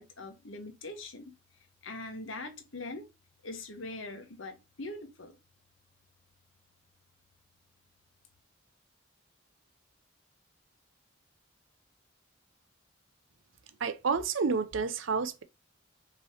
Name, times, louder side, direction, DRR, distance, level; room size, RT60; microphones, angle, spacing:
voice 1, 0.0-1.3 1.8-3.1 3.4-5.4, left 2 dB, 75° left, 1.2 m, -42 dB
voice 2, 13.8-15.4, right 5 dB, 75° right, 0.6 m, -29 dB
5.5 x 3.0 x 2.9 m
head